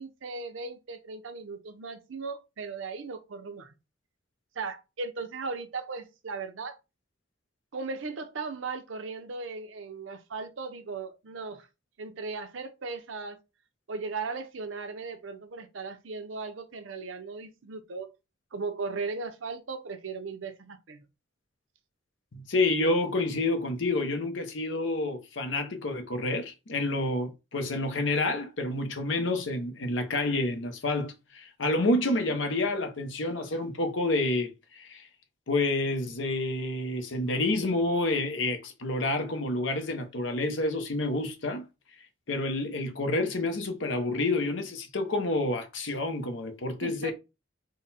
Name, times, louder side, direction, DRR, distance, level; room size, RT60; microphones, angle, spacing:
voice 1, 0.0-3.7 4.6-6.8 7.7-11.7 12.0-13.4 13.9-18.1 18.5-21.0 46.8-47.1, right 4 dB, 90° right, 0.7 m, -37 dB
voice 2, 22.3-35.1 35.5-41.7 42.3-47.1, left 2 dB, 75° left, 0.8 m, -29 dB
3.8 x 2.2 x 4.1 m
head